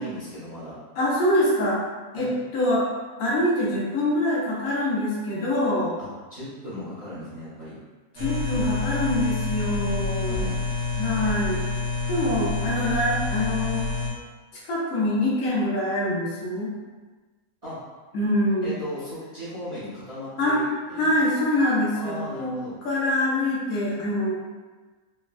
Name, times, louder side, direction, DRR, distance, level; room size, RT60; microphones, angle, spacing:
voice 1, 0.0-0.8 2.1-2.4 6.0-7.7 10.3-10.6 17.6-17.8 18.6-21.2 21.9-22.8, equal, 40° right, -11 dB, 0.7 m, -37 dB
voice 2, 1.0-1.8 2.1-2.9 3.2-5.9 8.2-10.5 11.0-11.6 12.1-13.9 14.5-16.7 18.1-18.8 20.4-20.6 21.0-22.5 22.8-24.4, left 1 dB, 75° left, -6 dB, 1.2 m, -24 dB
sound 1, 8.2-14.1, left 3 dB, 60° right, 1.0 m, -28 dB
3.4 x 2.1 x 2.3 m, 1.3 s
omnidirectional pair, 1.5 m